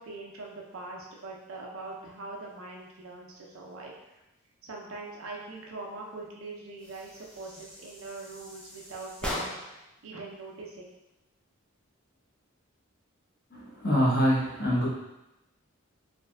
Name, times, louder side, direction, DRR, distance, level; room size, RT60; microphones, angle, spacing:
voice 1, 0.0-4.2 4.6-9.6 10.0-10.9, right 3 dB, 70° right, -2 dB, 0.5 m, -42 dB
sound 1, 6.8-9.9, left 1 dB, 5° left, 0.4 m, -39 dB
voice 2, 13.5-14.9, equal, 50° left, -6 dB, 0.9 m, -25 dB
3.2 x 2.6 x 2.2 m, 0.93 s
head